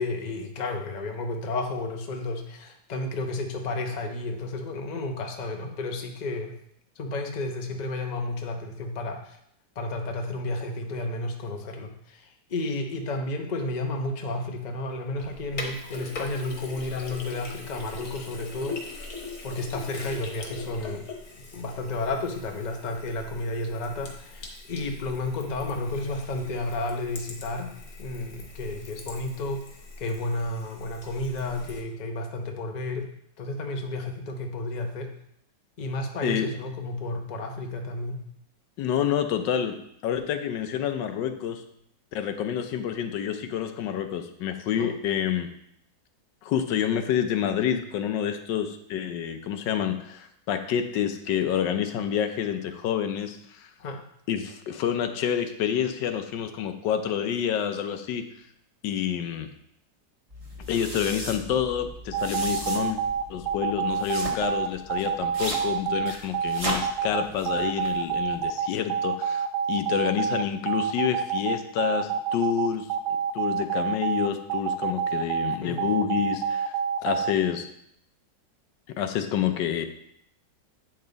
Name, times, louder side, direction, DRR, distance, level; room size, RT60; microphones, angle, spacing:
voice 1, 0.0-6.5 7.0-9.4 9.8-18.8 19.4-21.1 21.5-27.7 28.0-29.6 30.0-33.1 33.4-35.1 35.8-38.2 44.8-44.9 53.8-54.0 75.6-75.8, left 2 dB, 35° left, 3 dB, 0.8 m, -32 dB
Sink (filling or washing), 15.2-31.8, left 3 dB, 55° left, 1.7 m, -41 dB
voice 2, 38.8-41.6 42.1-45.5 46.4-53.7 54.3-58.3 58.8-59.5 60.7-63.0 63.3-72.9 73.3-76.8 77.0-77.7 79.0-79.8, left 9 dB, 85° left, 8 dB, 1.4 m, -28 dB
sound 1, 60.3-68.4, right 1 dB, 20° right, 1.2 m, -38 dB
sound 2, 62.1-77.3, right 7 dB, 75° right, 0.6 m, -27 dB
8.8 x 5.5 x 4.0 m, 0.71 s
omnidirectional pair, 1.9 m